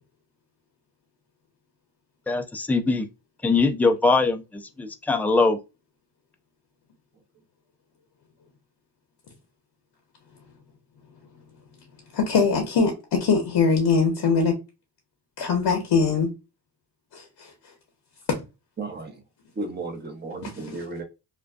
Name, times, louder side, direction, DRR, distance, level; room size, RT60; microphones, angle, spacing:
voice 1, 2.3-3.1 3.4-5.6, left 3 dB, 5° left, 0.3 m, -22 dB
voice 2, 11.3-14.6 15.4-16.3 17.1-17.7 18.3-18.4 20.4-20.5, left 5 dB, 65° left, 0.8 m, -23 dB
voice 3, 18.8-19.2 19.5-21.0, right 3 dB, 25° right, 0.8 m, -34 dB
2.5 x 2.2 x 2.2 m
cardioid pair, 60°, 44 cm